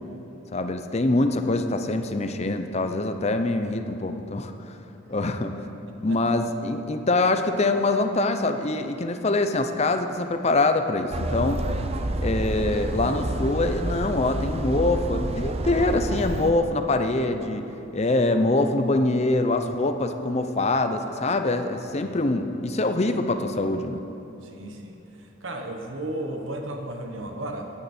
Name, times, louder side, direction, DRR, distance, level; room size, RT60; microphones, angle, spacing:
voice 1, 0.5-4.8 5.1-5.6 6.0-11.6 12.1-17.7 17.9-24.0, left 2 dB, 35° left, 7 dB, 0.7 m, -24 dB
sound 1, 11.1-16.5, right 1 dB, 30° right, 0.5 m, -29 dB
voice 2, 24.4-27.7, right 1 dB, 80° right, 3 dB, 1.3 m, -34 dB
17.5 x 9.7 x 4.4 m, 2.9 s
head